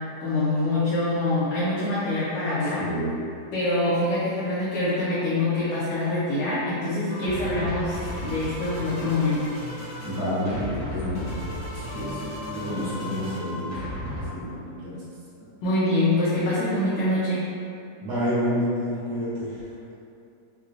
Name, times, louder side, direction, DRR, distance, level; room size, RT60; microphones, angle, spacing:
voice 1, 0.2-2.8 3.5-9.5 15.6-17.5, left 2 dB, 75° left, -10 dB, 1.7 m, -25 dB
voice 2, 2.8-3.1 10.0-11.4 11.7-15.0 15.4-15.5 18.0-19.7, equal, 75° right, -12 dB, 2.6 m, -29 dB
sound 1, 7.1-14.3, left 1 dB, 60° left, 1.5 m, -35 dB
6.0 x 2.3 x 2.4 m, 2.6 s
omnidirectional pair, 3.6 m